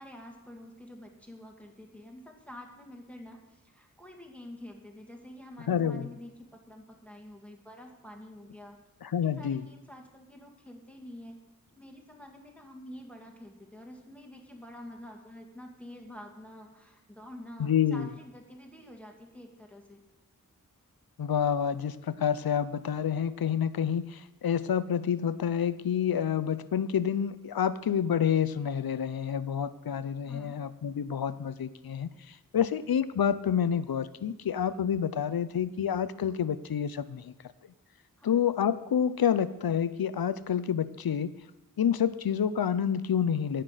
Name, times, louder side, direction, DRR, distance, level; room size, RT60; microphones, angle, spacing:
voice 1, 0.0-8.8 9.2-11.4 11.7-20.0 30.3-30.6 38.2-38.5, left 1 dB, 5° left, 2 dB, 1.7 m, -48 dB
voice 2, 5.7-6.1 9.1-9.6 17.6-18.1 21.2-37.3 38.2-41.3 41.8-43.6, left 8 dB, 90° left, 15 dB, 0.6 m, -28 dB
17.0 x 5.9 x 6.5 m, 1.0 s
wide cardioid pair, 70°, 35 cm